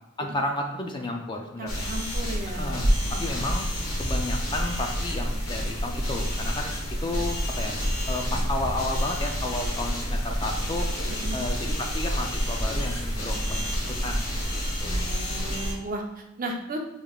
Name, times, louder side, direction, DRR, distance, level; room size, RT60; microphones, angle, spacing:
voice 1, 0.2-1.9 2.6-3.7 4.0-6.7 7.0-7.8 8.1-10.9 11.3-13.7 14.0-14.2 14.5-15.0, left 2 dB, 20° left, 2 dB, 0.4 m, -32 dB
voice 2, 1.6-3.3 11.1-11.4 14.8-16.8, right 2 dB, 40° right, 3 dB, 0.5 m, -36 dB
sound 1, 1.7-15.7, equal, 70° left, 1.1 m, -28 dB
3.5 x 3.4 x 2.3 m, 0.97 s
head